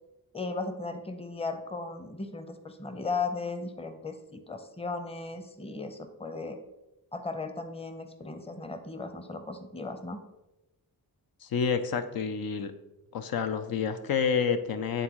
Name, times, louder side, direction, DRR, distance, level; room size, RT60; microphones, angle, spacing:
voice 1, 0.3-6.6 7.1-10.2, left 3 dB, 15° left, 8 dB, 0.7 m, -36 dB
voice 2, 11.4-12.7 13.1-15.0, left 6 dB, 75° left, 8 dB, 0.5 m, -29 dB
9.1 x 3.7 x 3.0 m, 0.97 s
cardioid pair, 65°, 36 cm